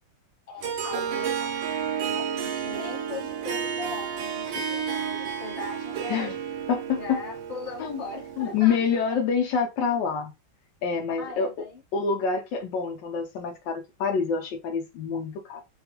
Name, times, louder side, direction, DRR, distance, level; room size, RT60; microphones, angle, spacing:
voice 1, 0.5-1.5 2.0-6.4 6.9-9.0 11.2-11.8, left 4 dB, 25° left, 0.9 m, -39 dB
Harp, 0.6-9.1, right 7 dB, 85° right, 1.4 m, -32 dB
voice 2, 6.7-7.2 7.8-8.0 8.4-10.3 10.8-11.5 11.9-15.6, left 6 dB, 75° left, 1.2 m, -27 dB
3.4 x 2.3 x 2.8 m
omnidirectional pair, 2.1 m